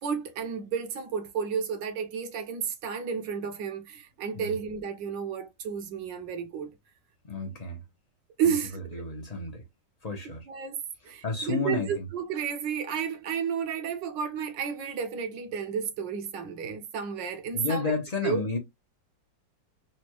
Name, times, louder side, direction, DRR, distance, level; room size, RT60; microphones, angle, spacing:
voice 1, 0.0-6.7 8.4-8.8 10.5-10.8 11.0-17.9 18.2-18.4, right 7 dB, 80° right, 1.5 m, -32 dB
voice 2, 7.2-7.8 8.5-9.6 10.0-10.5 11.0-12.1 17.5-18.6, left 3 dB, 50° left, 0.4 m, -32 dB
4.1 x 2.2 x 2.9 m
omnidirectional pair, 1.9 m